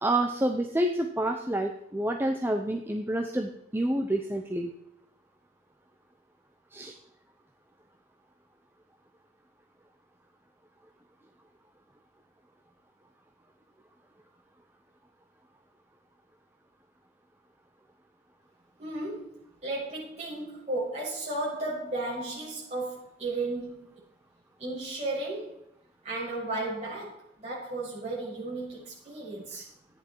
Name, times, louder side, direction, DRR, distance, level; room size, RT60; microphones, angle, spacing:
voice 1, 0.0-4.7 6.7-6.9 29.5-29.6, right 1 dB, 15° right, 4 dB, 0.8 m, -28 dB
voice 2, 18.8-23.9 24.6-25.6 26.0-29.6, right 2 dB, 40° right, -6 dB, 6.8 m, -34 dB
14.0 x 10.0 x 4.7 m, 0.72 s
head